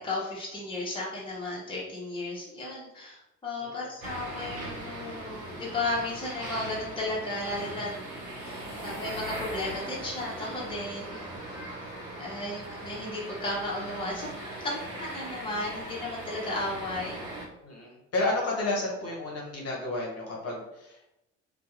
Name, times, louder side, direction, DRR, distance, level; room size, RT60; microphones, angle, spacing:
voice 1, 0.0-7.9 8.4-11.2 12.2-14.3 14.6-17.2, left 2 dB, 15° left, -5 dB, 0.9 m, -34 dB
sound 1, 4.0-17.5, right 1 dB, 60° right, 0.9 m, -39 dB
voice 2, 17.6-21.1, left 2 dB, 40° left, -3 dB, 0.9 m, -32 dB
2.7 x 2.3 x 2.4 m, 0.86 s
figure-of-eight pair, 45°, 36 cm